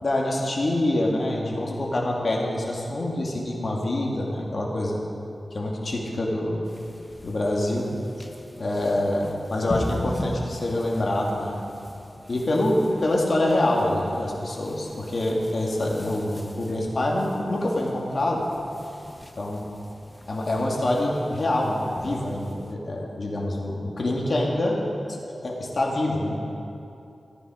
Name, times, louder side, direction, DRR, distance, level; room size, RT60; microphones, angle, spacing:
voice 1, 0.0-5.0 5.5-6.6 7.2-7.9 8.6-11.6 12.3-18.4 19.3-19.6 20.3-24.8 25.1-26.4, left 1 dB, 55° left, -2 dB, 2.3 m, -25 dB
sound 1, 6.6-22.7, left 1 dB, 20° left, 0.9 m, -40 dB
15.5 x 9.9 x 5.1 m, 2.7 s
wide cardioid pair, 85°, 0 cm